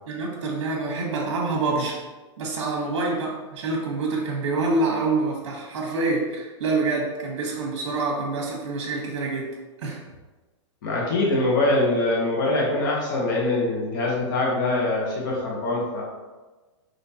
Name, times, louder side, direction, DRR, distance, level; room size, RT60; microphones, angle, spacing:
voice 1, 0.0-2.0 2.4-10.0, right 3 dB, 60° right, -2 dB, 1.4 m, -26 dB
voice 2, 10.8-16.0, left 2 dB, 40° left, -3 dB, 1.2 m, -23 dB
5.5 x 2.9 x 2.9 m, 1.2 s
hypercardioid pair, 165°, 16 cm